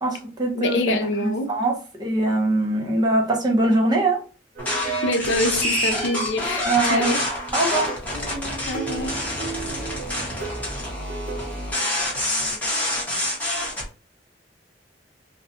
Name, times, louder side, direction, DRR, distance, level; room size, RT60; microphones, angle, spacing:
voice 1, 0.0-1.7 2.0-4.2 6.7-7.2 7.5-7.9, right 2 dB, 20° right, 0.7 m, -22 dB
voice 2, 0.5-1.5 5.0-7.2 8.7-9.1, left 2 dB, 75° left, 0.5 m, -25 dB
sound 1, 4.5-11.8, right 3 dB, 50° right, 0.9 m, -36 dB
sound 2, 4.6-13.8, left 1 dB, 10° left, 0.9 m, -27 dB
2.5 x 2.2 x 2.7 m
head